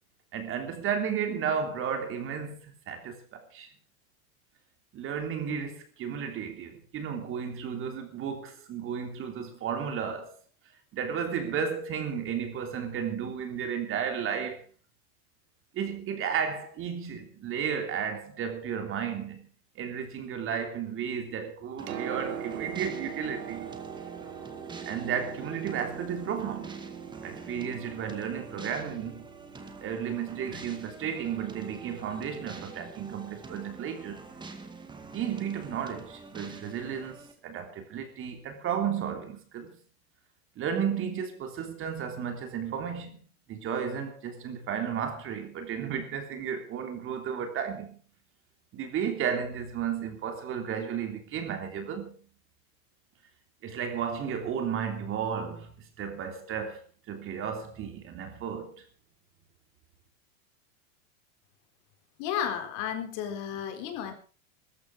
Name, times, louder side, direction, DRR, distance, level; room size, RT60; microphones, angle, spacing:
voice 1, 0.3-3.7 4.9-10.4 10.9-14.6 15.7-19.5 19.7-23.7 24.8-26.8 27.2-29.2 29.8-34.2 35.1-39.8 40.5-48.0 48.7-52.1 53.6-56.8 57.1-58.8, right 7 dB, 30° right, 3.3 m, -33 dB
Piano, 21.6-35.3 36.4-36.5, right 9 dB, 90° right, 2.9 m, -43 dB
sound 1, 21.8-37.3, right 3 dB, 10° right, 2.1 m, -46 dB
voice 2, 62.2-64.1, left 9 dB, 45° left, 4.2 m, -33 dB
17.0 x 14.5 x 4.8 m
supercardioid pair, 140°, 41 cm